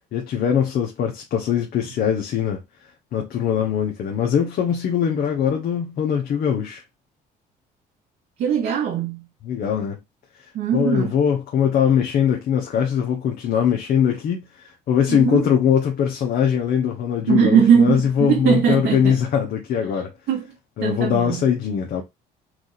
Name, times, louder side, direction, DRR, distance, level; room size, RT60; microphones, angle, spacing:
voice 1, 0.1-2.6 3.1-6.8 9.4-10.0 10.7-20.1 20.8-22.0, left 8 dB, 60° left, 1.0 m, -21 dB
voice 2, 8.4-9.3 10.5-11.1 15.1-15.5 17.3-19.2 20.3-21.4, right 8 dB, 75° right, 1.2 m, -20 dB
4.6 x 2.6 x 4.0 m
cardioid pair, 110°, 17 cm